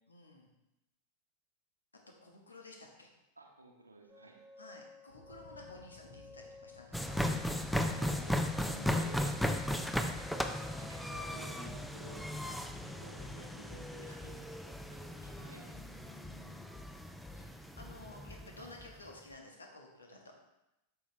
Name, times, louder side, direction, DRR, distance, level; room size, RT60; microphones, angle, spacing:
voice 1, 0.1-0.5 2.2-3.1 4.6-7.2 15.2-16.7 17.3-20.2, left 2 dB, 75° left, 2 dB, 1.3 m, -54 dB
voice 2, 3.4-4.4 7.5-9.3 10.8-12.4 13.0-14.5 14.8-15.7 18.6-18.7, right 2 dB, 85° right, 0 dB, 1.1 m, -54 dB
sound 1, 4.1-11.3, left 3 dB, 15° right, 1.6 m, -55 dB
sound 2, 5.1-13.7, left 4 dB, 50° left, 1.3 m, -56 dB
sound 3, 6.9-18.9, equal, ahead, 0.5 m, -36 dB
8.3 x 6.2 x 3.1 m, 0.92 s
figure-of-eight pair, 90°, 0 cm